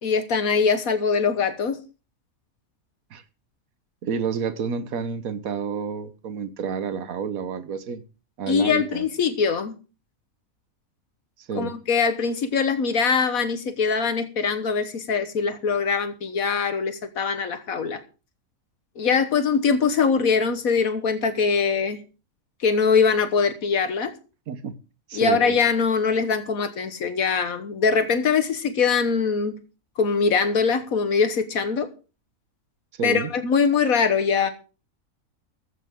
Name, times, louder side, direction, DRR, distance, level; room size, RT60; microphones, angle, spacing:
voice 1, 0.0-1.8 8.5-9.7 11.5-18.0 19.0-22.0 22.6-24.1 25.1-29.6 30.0-31.9 33.0-34.5, left 5 dB, 85° left, 1.7 m, -22 dB
voice 2, 4.0-8.0 8.4-9.1 11.4-11.7 24.5-24.8 25.1-25.6 32.9-33.3, right 6 dB, 85° right, 1.5 m, -29 dB
15.0 x 12.5 x 3.7 m
omnidirectional pair, 1.4 m